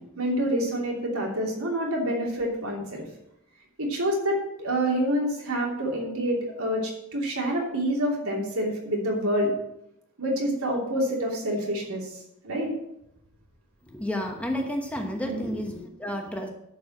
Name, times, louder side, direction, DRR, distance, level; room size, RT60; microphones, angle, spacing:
voice 1, 0.0-3.0 3.8-9.5 10.2-12.7 15.2-15.4, equal, 80° right, -1 dB, 3.0 m, -27 dB
voice 2, 13.9-16.5, left 1 dB, 5° left, 2 dB, 1.1 m, -31 dB
11.0 x 4.8 x 7.4 m, 0.81 s
head